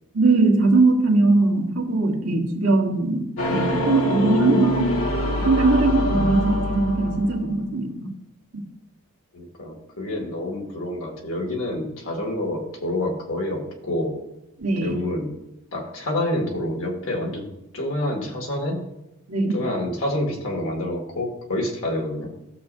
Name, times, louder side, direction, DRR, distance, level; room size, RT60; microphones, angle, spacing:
voice 1, 0.1-4.9 5.4-8.1 8.5-8.6 14.6-14.9 19.3-19.6, right 2 dB, 75° right, 1 dB, 1.6 m, -20 dB
sound 1, 3.4-7.5, equal, 85° left, 1.6 m, -24 dB
voice 2, 9.3-14.2 14.8-15.3 15.7-17.5 17.7-18.8 19.5-22.3, left 1 dB, 65° left, 0 dB, 2.4 m, -27 dB
15.0 x 7.1 x 2.7 m, 0.92 s
head